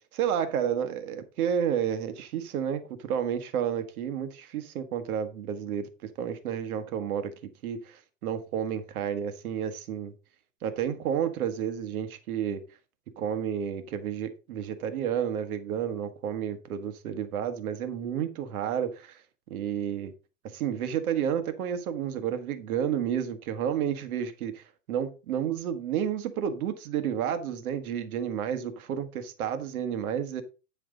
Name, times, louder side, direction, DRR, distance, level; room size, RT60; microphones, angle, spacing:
voice 1, 0.1-10.1 10.6-12.6 13.2-19.2 19.5-20.1 20.4-30.4, right 9 dB, 85° right, 1.4 m, -31 dB
9.4 x 5.8 x 3.8 m
supercardioid pair, 170°, 42 cm